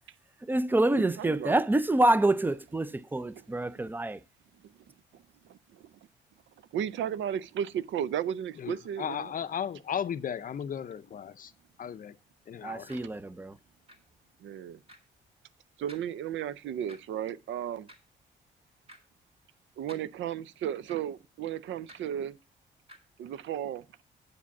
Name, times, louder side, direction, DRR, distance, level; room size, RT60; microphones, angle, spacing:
voice 1, 0.4-4.2 12.6-13.6, right 2 dB, 10° right, 0.4 m, -27 dB
voice 2, 0.9-1.6 3.3-3.4 5.1-5.9 6.7-9.3 12.9-13.1 14.4-14.8 15.8-17.9 19.8-22.3 23.2-23.8, right 10 dB, 70° right, 0.5 m, -34 dB
voice 3, 8.6-11.5 11.8-12.1 12.5-12.9, left 8 dB, 45° left, 0.5 m, -35 dB
sound 1, 12.9-13.0 13.9-14.0 14.9-15.0 15.9-16.1 16.9-17.0 17.9-18.1 18.9-19.0 19.9-20.0 20.9-21.0 21.9-22.0 22.9-23.0, equal, 30° right, 2.1 m, -51 dB
8.2 x 5.0 x 7.0 m
cardioid pair, 90°, 20 cm